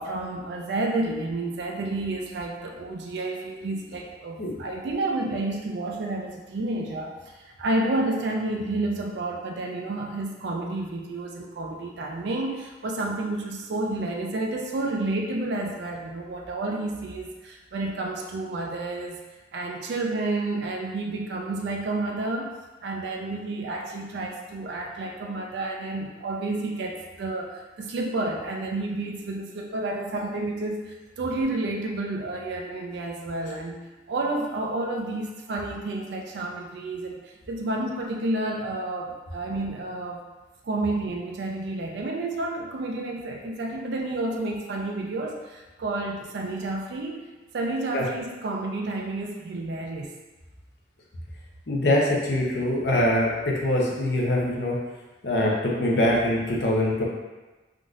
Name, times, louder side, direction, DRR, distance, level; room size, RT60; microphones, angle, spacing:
voice 1, 0.0-19.2 19.5-22.5 22.8-33.8 34.1-40.2 40.6-47.2 47.5-50.1, right 2 dB, 65° right, 1 dB, 0.3 m, -30 dB
voice 2, 51.7-54.8 55.2-57.0, left 1 dB, 60° left, -3 dB, 0.6 m, -23 dB
3.6 x 2.5 x 2.4 m, 1.2 s
head